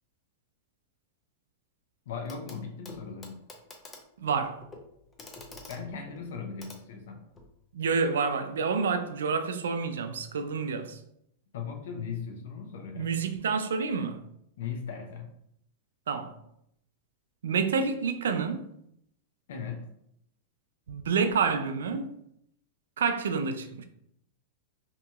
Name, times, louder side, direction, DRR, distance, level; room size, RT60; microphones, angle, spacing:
voice 1, 2.1-3.4 5.7-7.2 11.5-13.2 14.6-15.3 19.5-19.8, left 6 dB, 75° left, 0.6 m, -38 dB
Clock, 2.3-2.6 2.8-7.5 8.8-8.9, left 2 dB, 20° left, 0.6 m, -49 dB
voice 2, 4.2-4.6 7.7-11.0 13.0-14.2 16.1-16.4 17.4-18.7 20.9-22.1 23.0-23.8, right 5 dB, 85° right, 0.3 m, -28 dB
2.8 x 2.7 x 2.3 m
hypercardioid pair, 125°, 0 cm